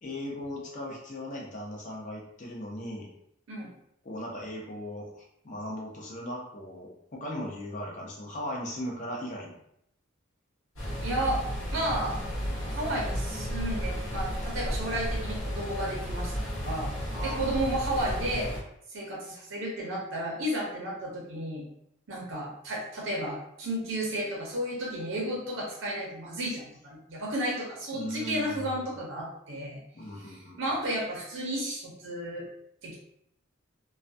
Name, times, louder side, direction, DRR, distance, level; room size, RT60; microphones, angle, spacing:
voice 1, 0.0-3.1 4.0-9.5 17.1-17.5 27.9-28.9 29.9-30.6, equal, 35° left, -2 dB, 0.6 m, -38 dB
sound 1, 10.8-18.6, equal, 65° left, 0.9 m, -33 dB
voice 2, 11.0-11.4 11.7-12.2 12.5-16.4 16.6-16.9 17.2-18.5 18.9-21.6 22.1-29.8 30.2-32.5 32.8-33.0, right 1 dB, 60° right, -3 dB, 0.6 m, -33 dB
2.2 x 2.1 x 2.5 m, 0.75 s
head